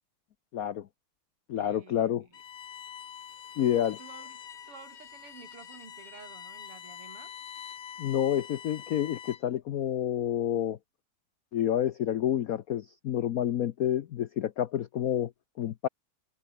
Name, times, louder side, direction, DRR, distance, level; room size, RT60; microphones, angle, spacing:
voice 1, 0.5-0.9 1.5-2.2 3.6-4.0 8.0-10.8 11.5-15.3 15.6-15.9, left 10 dB, 80° left, 0.7 m, -29 dB
voice 2, 1.6-2.4 4.0-4.4 4.7-7.4, right 5 dB, 90° right, 4.1 m, -51 dB
Bowed string instrument, 2.3-9.6, left 8 dB, 65° left, 2.5 m, -45 dB
omnidirectional pair, 2.4 m